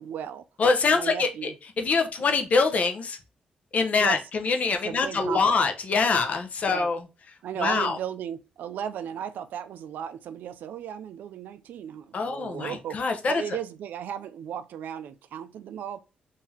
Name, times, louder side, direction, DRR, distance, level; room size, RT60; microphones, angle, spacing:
voice 1, 0.0-0.4 0.8-1.5 2.2-2.3 4.0-4.2 4.7-5.6 6.7-6.9 7.4-13.0 13.3-16.0, right 9 dB, 85° right, 0.3 m, -35 dB
voice 2, 0.6-3.2 3.7-7.0 7.6-8.0 12.1-13.4, left 4 dB, 55° left, 0.7 m, -24 dB
3.8 x 2.7 x 2.7 m
cardioid pair, 90°, 3 cm